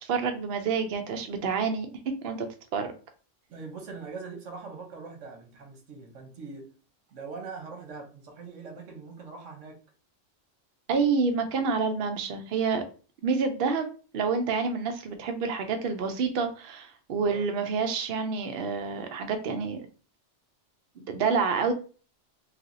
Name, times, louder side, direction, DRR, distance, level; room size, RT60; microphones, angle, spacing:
voice 1, 0.0-1.9 2.2-2.9 10.9-12.8 13.2-19.9 21.0-21.7, right 5 dB, 60° right, 0.6 m, -28 dB
voice 2, 3.5-6.7 7.1-9.8 17.2-17.5, right 4 dB, 75° right, 1.1 m, -42 dB
3.3 x 2.6 x 2.5 m
omnidirectional pair, 1.3 m